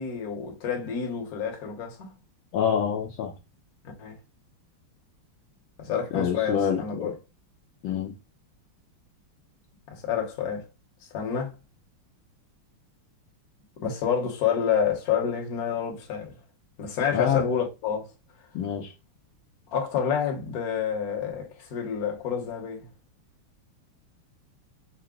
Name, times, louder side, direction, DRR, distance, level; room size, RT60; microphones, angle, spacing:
voice 1, 0.0-2.1 4.0-4.2 5.8-7.1 9.9-10.7 11.1-11.5 13.8-16.4 16.8-18.1 19.7-22.9, left 7 dB, 55° left, 1.2 m, -28 dB
voice 2, 2.5-3.3 6.1-7.1 7.8-8.1 17.1-17.6 18.5-18.9, left 8 dB, 75° left, 1.4 m, -26 dB
5.7 x 2.1 x 3.7 m
omnidirectional pair, 2.4 m